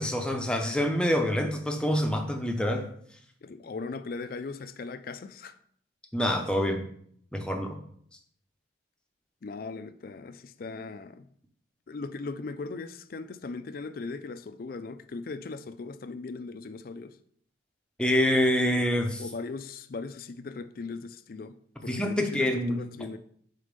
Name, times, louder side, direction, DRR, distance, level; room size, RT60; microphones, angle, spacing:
voice 1, 0.0-2.9 6.1-6.8 7.3-7.8 18.0-19.2 21.9-22.8, equal, 5° left, 0.6 m, -26 dB
voice 2, 3.4-5.6 9.4-11.3 11.9-17.2 19.2-21.5 21.8-23.2, left 4 dB, 50° left, 0.4 m, -38 dB
5.1 x 4.1 x 5.2 m
head